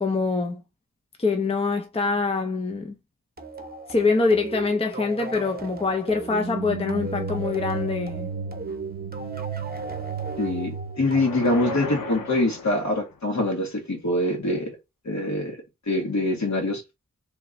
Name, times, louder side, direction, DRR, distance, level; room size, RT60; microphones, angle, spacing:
voice 1, 0.0-0.6 1.2-3.0 3.9-8.3, left 4 dB, 20° left, 0.6 m, -24 dB
sound 1, 3.4-12.6, right 3 dB, 30° right, 0.8 m, -37 dB
sound 2, 6.2-12.2, right 5 dB, 50° right, 0.5 m, -34 dB
voice 2, 10.4-14.8 15.0-15.6 15.9-16.8, left 2 dB, 60° left, 1.9 m, -24 dB
sound 3, 11.0-13.3, left 5 dB, 90° left, 0.8 m, -36 dB
3.3 x 3.0 x 3.9 m
wide cardioid pair, 120°, 32 cm